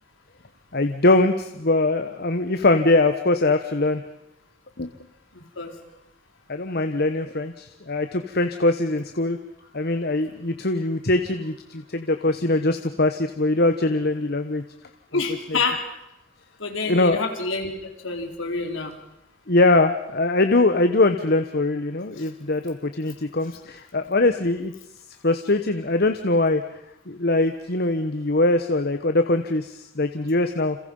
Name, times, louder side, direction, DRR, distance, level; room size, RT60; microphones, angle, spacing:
voice 1, 0.7-4.0 4.8-4.9 6.5-9.4 9.7-14.6 15.5-15.6 16.9-17.2 19.5-24.7 25.2-26.6 27.1-30.8, left 2 dB, 50° left, 8 dB, 1.2 m, -22 dB
voice 2, 15.1-15.9 16.6-17.7 18.0-18.9, left 3 dB, 65° left, 3 dB, 4.2 m, -27 dB
30.0 x 27.5 x 5.6 m, 0.85 s
head